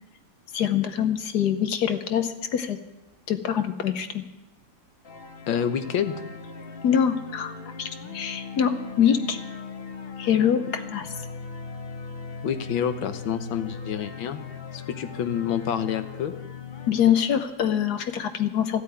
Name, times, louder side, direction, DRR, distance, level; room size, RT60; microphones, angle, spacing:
voice 1, 0.5-2.8 3.3-4.2 6.8-7.5 7.8-9.4 10.2-11.1 16.9-18.8, left 9 dB, 65° left, 9 dB, 1.3 m, -24 dB
sound 1, 5.0-16.9, left 5 dB, 45° left, 0.8 m, -39 dB
voice 2, 5.5-6.2 12.4-14.4 14.7-16.3, left 8 dB, 85° left, 9 dB, 1.7 m, -28 dB
15.0 x 8.5 x 9.1 m, 1.1 s
omnidirectional pair, 2.1 m